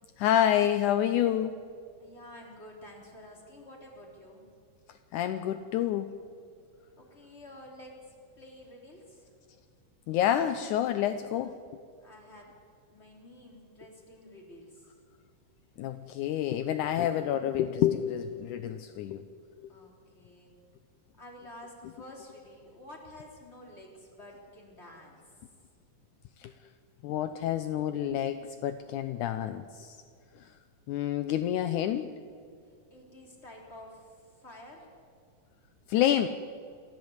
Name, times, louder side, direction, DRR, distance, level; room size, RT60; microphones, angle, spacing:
voice 1, 0.2-1.6 5.1-6.1 10.1-11.6 15.8-19.3 19.6-19.7 26.4-26.5 27.0-30.0 30.4-30.5 30.9-32.2 35.9-36.3, left 11 dB, 75° left, 10 dB, 2.1 m, -28 dB
voice 2, 2.0-4.5 6.9-9.3 12.0-12.6 12.9-14.9 19.7-20.5 21.2-25.4 32.7-34.9, left 1 dB, 20° left, 0 dB, 4.0 m, -50 dB
27.5 x 14.0 x 8.1 m, 2.3 s
omnidirectional pair, 3.7 m